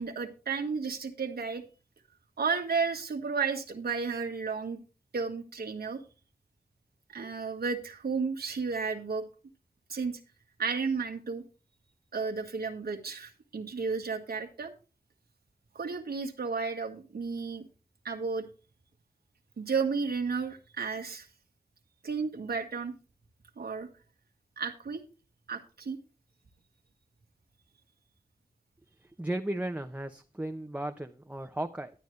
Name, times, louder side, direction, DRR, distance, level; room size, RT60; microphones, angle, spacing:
voice 1, 0.0-1.6 2.4-4.8 5.1-6.0 7.1-9.2 9.9-10.2 10.6-11.4 12.1-14.7 15.7-17.6 18.0-18.5 19.6-21.3 22.0-22.9 23.6-23.9 24.6-25.0 25.5-26.0, right 5 dB, 75° right, 3 dB, 1.6 m, -32 dB
voice 2, 29.2-31.9, right 1 dB, 10° right, 5 dB, 0.8 m, -35 dB
11.5 x 9.1 x 3.2 m, 0.33 s
cardioid pair, 50°, 16 cm